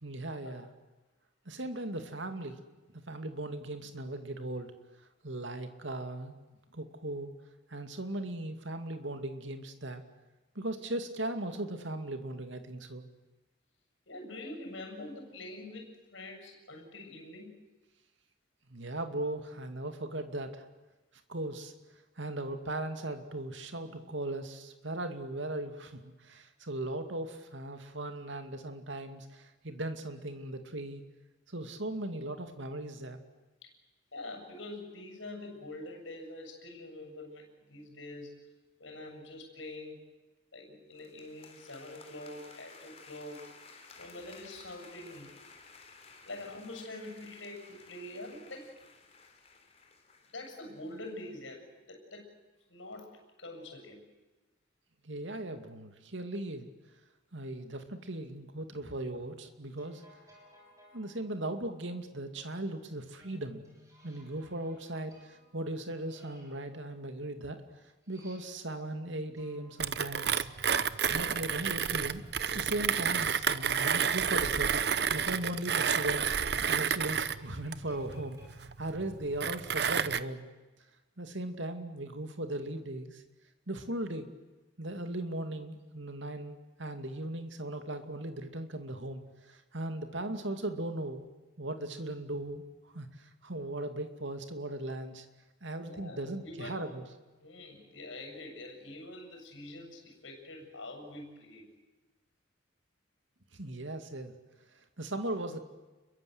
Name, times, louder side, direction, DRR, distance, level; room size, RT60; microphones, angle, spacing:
voice 1, 0.0-0.7 1.5-2.6 2.9-4.7 5.2-6.4 6.7-7.3 7.7-10.0 10.5-13.0 18.7-20.7 21.3-21.7 22.2-31.0 31.5-33.2 55.0-56.7 57.3-60.0 60.9-63.6 64.0-67.6 68.1-70.5 71.1-72.2 72.5-74.7 75.1-80.5 81.2-83.2 83.7-84.3 84.8-91.2 91.6-95.3 95.6-97.0 103.5-104.3 105.0-105.6, right 1 dB, 75° right, 7 dB, 2.5 m, -38 dB
voice 2, 14.1-17.6 33.6-33.7 34.1-38.5 38.8-40.1 40.5-45.4 46.3-48.8 50.3-52.3 52.7-54.1 95.8-96.9 97.4-101.7, left 2 dB, 80° left, 3 dB, 7.2 m, -45 dB
sound 1, 40.9-51.2, left 4 dB, 30° left, 3.8 m, -55 dB
sound 2, 59.4-62.0 63.2-68.9 69.3-78.5, equal, 15° right, 6.7 m, -60 dB
Mechanisms, 69.8-80.2, right 7 dB, 55° right, 0.8 m, -30 dB
29.5 x 22.5 x 8.0 m, 1.2 s
head